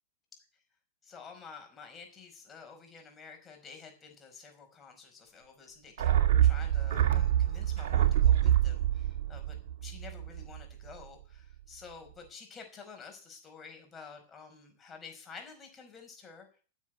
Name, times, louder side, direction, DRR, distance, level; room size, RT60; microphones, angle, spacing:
voice 1, 1.0-6.1 6.4-16.6, left 5 dB, 20° left, 3 dB, 5.0 m, -50 dB
sound 1, 6.0-10.6 10.9-11.0, right 11 dB, 65° right, 1.9 m, -26 dB
11.0 x 7.2 x 9.4 m, 0.40 s
hypercardioid pair, 110°, 0 cm